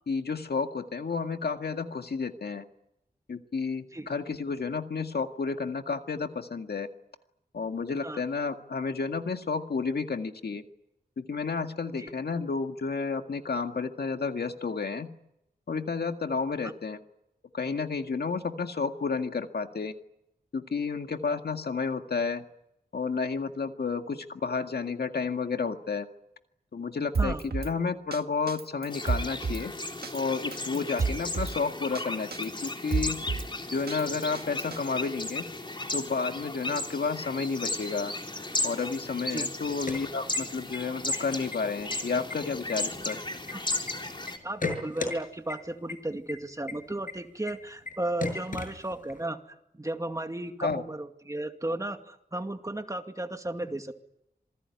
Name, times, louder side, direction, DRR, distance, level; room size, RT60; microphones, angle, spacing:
voice 1, 0.1-2.6 3.3-6.9 7.5-10.6 11.2-15.1 15.7-17.0 17.5-19.9 20.5-22.4 22.9-26.1 26.7-29.7 30.1-33.2 33.7-35.5 35.9-38.1 38.6-43.2 50.6-50.8, left 4 dB, 75° left, 6 dB, 1.9 m, -31 dB
Drum kit, 27.1-27.7 28.1-28.2 28.5-29.6 30.0-30.2 30.5-31.6 31.9-32.0 32.3-33.5 33.9-34.8, right 4 dB, 75° right, 1.6 m, -30 dB
sound 1, 28.9-44.4, left 2 dB, 30° left, 3.7 m, -35 dB
sound 2, 39.7-40.8 41.1-41.2 41.5-42.0 42.3-43.9 44.3-45.2 45.5-45.6 45.9-46.0 46.3-46.4 46.7-46.8 47.1-47.2 47.5-47.6 47.9-48.0 48.2-49.2, left 3 dB, 55° left, 6.9 m, -34 dB
voice 2, 44.4-49.4 49.8-53.9, right 1 dB, 20° right, 6 dB, 2.3 m, -34 dB
27.0 x 20.0 x 9.7 m, 0.83 s
wide cardioid pair, 105°, 17 cm